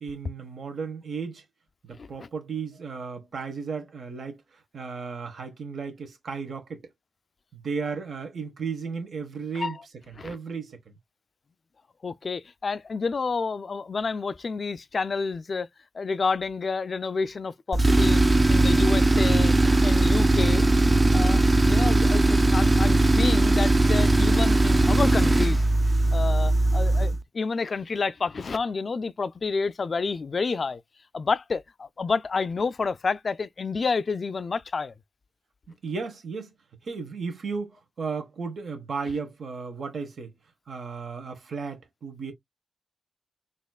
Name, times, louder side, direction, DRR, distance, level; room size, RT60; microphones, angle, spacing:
voice 1, 0.0-1.4 1.8-4.4 4.7-6.9 7.5-9.8 10.2-10.8 26.1-26.3 35.7-36.5 36.8-40.3 40.7-42.3, right 5 dB, 75° right, 1.3 m, -34 dB
voice 2, 2.0-2.3 9.5-9.7 10.2-10.4 12.0-15.7 15.9-19.5 19.8-20.6 21.1-25.6 26.1-30.8 31.1-34.9, left 4 dB, 60° left, 0.3 m, -29 dB
Tools, 17.7-27.2, right 2 dB, 35° right, 0.5 m, -19 dB
4.2 x 2.9 x 2.2 m
cardioid pair, 50°, 0 cm